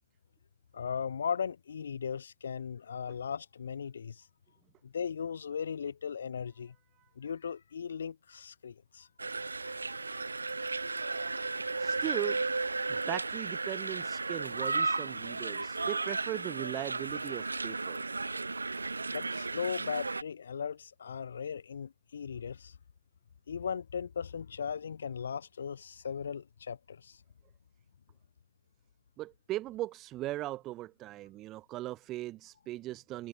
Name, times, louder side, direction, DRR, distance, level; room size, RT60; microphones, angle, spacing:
voice 1, 0.7-4.3 4.8-6.8 7.2-9.1 19.1-22.7 23.5-27.2, left 7 dB, 60° left, 0.6 m, -37 dB
sound 1, 9.2-20.2, right 3 dB, 75° right, 0.4 m, -34 dB
voice 2, 11.8-12.4 12.9-18.0 29.2-33.3, right 16 dB, 25° right, 1.1 m, -39 dB
figure-of-eight pair, 120°, 0 cm